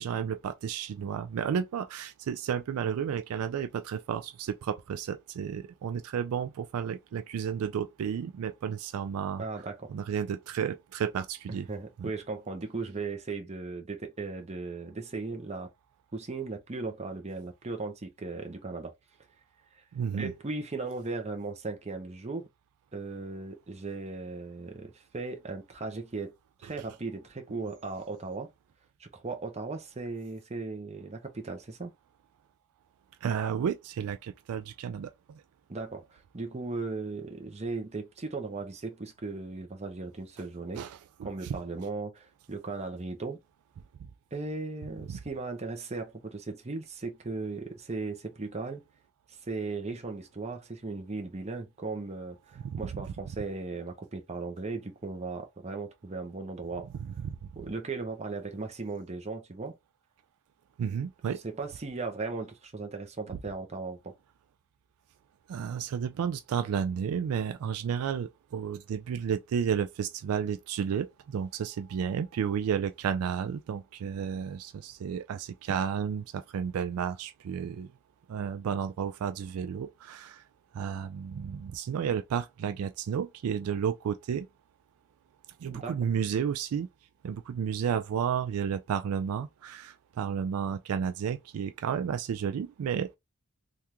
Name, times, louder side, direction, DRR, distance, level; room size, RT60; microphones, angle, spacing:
voice 1, 0.0-9.4 9.9-11.7 12.0-12.1 19.9-20.3 33.2-35.4 40.7-41.6 52.6-52.8 56.9-57.4 60.8-61.4 65.5-77.9 78.3-80.4 80.7-84.5 85.6-86.9 87.2-93.2, right 7 dB, 70° right, 0.3 m, -32 dB
voice 2, 9.4-9.9 11.5-15.7 16.1-18.9 19.7-19.8 20.1-22.5 22.9-28.5 29.0-31.9 35.7-40.8 41.2-43.4 44.3-48.8 49.3-56.9 57.6-59.7 61.4-64.2 85.7-86.0, right 3 dB, 30° right, 0.7 m, -37 dB
3.5 x 2.4 x 2.9 m
head